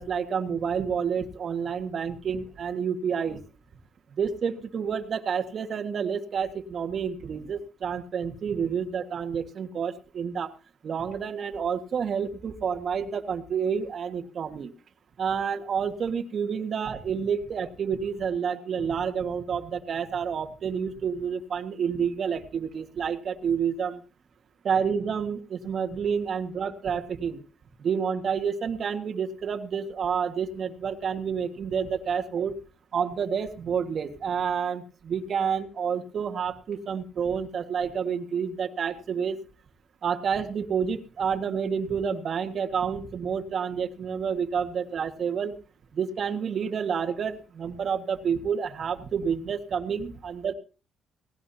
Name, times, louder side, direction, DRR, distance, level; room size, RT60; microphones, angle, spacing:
voice 1, 0.0-3.4 4.2-10.5 10.8-14.7 15.2-24.0 24.6-27.4 27.8-32.5 32.9-39.4 40.0-45.6 45.9-50.5, right 7 dB, 55° right, 6 dB, 1.7 m, -29 dB
18.5 x 17.0 x 2.8 m, 0.35 s
cardioid pair, 90°, 0 cm